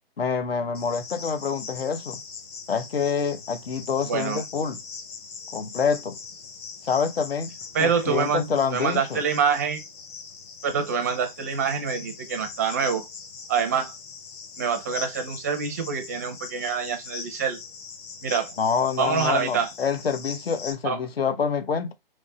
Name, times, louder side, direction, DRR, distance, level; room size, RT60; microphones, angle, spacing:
voice 1, 0.2-2.2 2.7-4.8 5.5-6.2 6.9-7.5 7.8-9.2 18.6-21.9, left 6 dB, 75° left, 1.0 m, -26 dB
Cricket, 0.7-20.7, left 5 dB, 25° left, 1.0 m, -41 dB
voice 2, 4.1-4.4 7.7-9.8 10.6-13.1 13.5-13.9 14.6-17.6 18.2-18.5 19.0-19.7 20.8-21.0, right 6 dB, 15° right, 0.5 m, -26 dB
3.5 x 3.2 x 4.1 m
hypercardioid pair, 155°, 30 cm